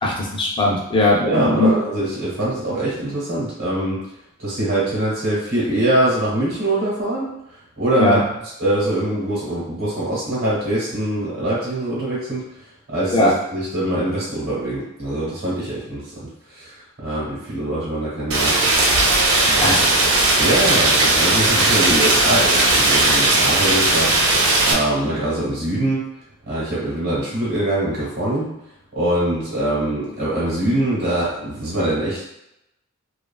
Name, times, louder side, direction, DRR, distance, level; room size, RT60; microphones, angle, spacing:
voice 1, 0.0-1.7 8.0-8.2 13.1-13.3 19.6-19.8, left 2 dB, 25° left, -2 dB, 0.5 m, -18 dB
voice 2, 1.2-4.0 4.4-7.3 7.8-8.2 8.6-12.4 12.9-16.7 17.0-18.6 19.4-20.0 20.4-26.0 26.5-28.5 28.9-32.2, right 1 dB, 55° right, -9 dB, 1.1 m, -23 dB
Rain, 18.3-24.7, right 2 dB, 90° right, 0.6 m, -17 dB
3.0 x 2.4 x 2.2 m, 0.84 s
head